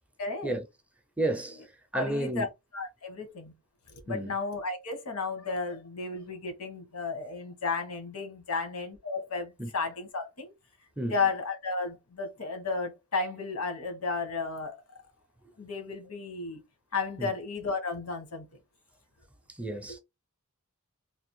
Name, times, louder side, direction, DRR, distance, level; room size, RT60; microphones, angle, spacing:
voice 1, 0.2-0.6 1.9-2.5 2.7-3.5 3.9-10.5 11.1-14.8 15.6-16.6 16.9-18.5 19.9-20.0, left 4 dB, 85° left, 1.1 m, -33 dB
voice 2, 1.2-1.7 1.9-2.5 4.1-4.3 9.6-9.7 11.0-11.2 17.2-17.3 19.5-20.0, right 1 dB, 5° right, 0.4 m, -31 dB
3.3 x 2.4 x 3.1 m
head